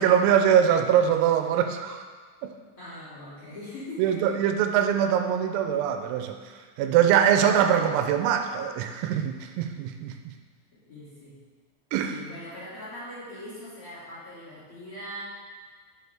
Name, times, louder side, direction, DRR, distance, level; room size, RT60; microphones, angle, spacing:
voice 1, 0.0-2.1 2.4-2.5 4.0-10.3 11.9-12.2, right 9 dB, 85° right, 6 dB, 3.3 m, -23 dB
voice 2, 2.8-4.3 10.9-11.4 12.1-15.2, left 1 dB, 35° left, -11 dB, 2.4 m, -41 dB
10.5 x 7.2 x 3.5 m, 1.5 s
omnidirectional pair, 5.9 m